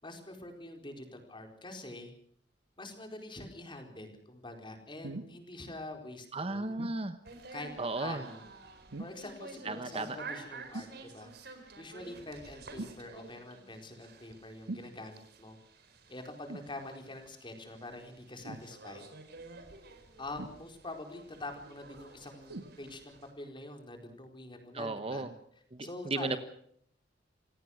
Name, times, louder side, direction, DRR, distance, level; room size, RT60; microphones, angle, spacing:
voice 1, 0.0-2.1 2.8-6.7 7.5-7.7 8.0-8.4 9.0-11.3 11.8-15.6 16.1-19.0 20.2-25.2 25.8-26.4, left 2 dB, 25° left, 4 dB, 4.4 m, -45 dB
sound 1, 5.0-5.4 6.8-7.0 8.9-9.3 10.7-11.0 12.8-13.0 14.7-14.9 16.5-16.7 18.4-18.7 20.4-20.9 22.5-22.8 23.6-23.7, right 2 dB, 90° right, 1.6 m, -42 dB
voice 2, 6.3-7.2 7.8-8.2 9.6-10.2 24.7-25.3 25.7-26.4, right 3 dB, 30° right, 10 dB, 1.1 m, -35 dB
sound 2, 7.2-23.3, right 3 dB, 60° right, 4.4 m, -51 dB
27.5 x 17.5 x 6.5 m, 0.65 s
head